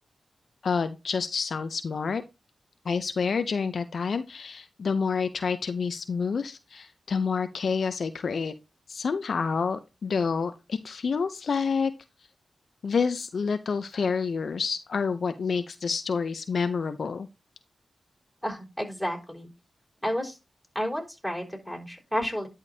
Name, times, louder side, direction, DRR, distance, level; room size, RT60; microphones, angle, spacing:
voice 1, 0.6-2.2 2.9-8.5 8.9-11.9 12.8-17.3, left 5 dB, 70° left, 10 dB, 0.5 m, -28 dB
voice 2, 18.4-19.5 20.0-20.4 20.7-22.5, equal, ahead, -1 dB, 3.8 m, -31 dB
11.0 x 5.0 x 2.7 m, 0.26 s
cardioid pair, 45°, 0 cm